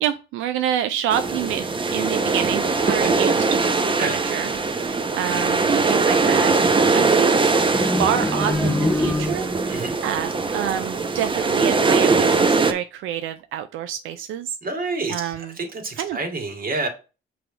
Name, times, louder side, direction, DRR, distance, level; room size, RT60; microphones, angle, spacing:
voice 1, 0.0-3.4 4.0-4.5 5.1-7.5 8.0-9.5 10.0-14.6 15.1-15.6 16.0-16.2, right 10 dB, 90° right, 0.4 m, -27 dB
sound 1, 1.1-12.7, right 4 dB, 25° right, 0.7 m, -21 dB
voice 2, 3.0-3.4 4.0-4.2 9.7-10.0 14.6-16.9, right 3 dB, 45° right, 2.0 m, -28 dB
sound 2, 7.7-9.8, left 1 dB, 5° left, 0.5 m, -24 dB
5.8 x 3.4 x 4.9 m
cardioid pair, 90°, 20 cm